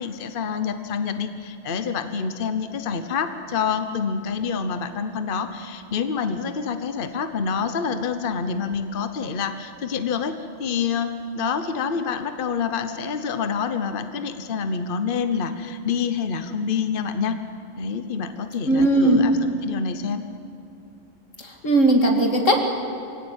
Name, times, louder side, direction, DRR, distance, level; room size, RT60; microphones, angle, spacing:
voice 1, 0.0-10.3 10.6-11.1 11.3-17.4 17.8-19.3 19.6-20.2, left 6 dB, 45° left, 9 dB, 1.1 m, -27 dB
voice 2, 18.6-19.4 21.4-22.6, right 1 dB, 85° left, 3 dB, 2.8 m, -18 dB
24.0 x 16.5 x 8.9 m, 2.6 s
omnidirectional pair, 1.3 m